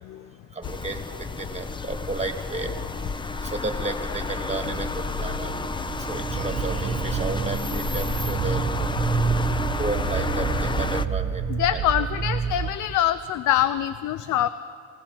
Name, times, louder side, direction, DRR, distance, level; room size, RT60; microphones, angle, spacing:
voice 1, 0.5-2.7 3.4-5.5 6.1-8.7 9.8-11.8, right 3 dB, 20° right, 5 dB, 1.4 m, -32 dB
sound 1, 0.6-11.1, left 3 dB, 15° left, 0.4 m, -31 dB
sound 2, 4.4-12.7, right 6 dB, 45° right, 0.8 m, -28 dB
voice 2, 11.5-14.5, left 12 dB, 75° left, 13 dB, 0.5 m, -24 dB
27.5 x 16.5 x 3.0 m, 2.5 s
cardioid pair, 90°, 30 cm